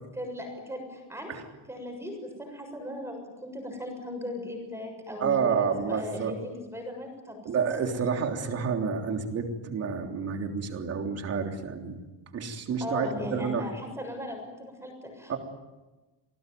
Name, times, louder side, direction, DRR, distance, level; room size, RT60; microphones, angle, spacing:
voice 1, 0.1-1.3 1.7-7.5 12.8-15.4, left 1 dB, 5° right, 2 dB, 7.0 m, -38 dB
voice 2, 5.2-6.3 7.5-12.0 12.3-13.7 15.3-15.4, right 6 dB, 35° right, 3 dB, 3.5 m, -29 dB
28.5 x 19.5 x 9.4 m, 1.2 s
cardioid pair, 165°, 42 cm